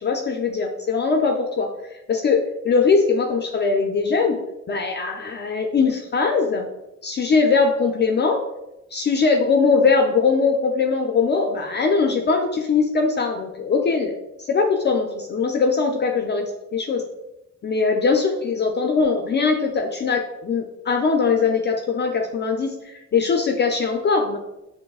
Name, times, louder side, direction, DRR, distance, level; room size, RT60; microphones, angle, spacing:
voice 1, 0.0-1.7 2.1-4.4 4.7-6.7 7.0-8.4 8.9-17.0 17.6-24.4, left 4 dB, 35° left, 3 dB, 0.4 m, -21 dB
5.9 x 2.0 x 2.3 m, 0.92 s
cardioid pair, 90°, 30 cm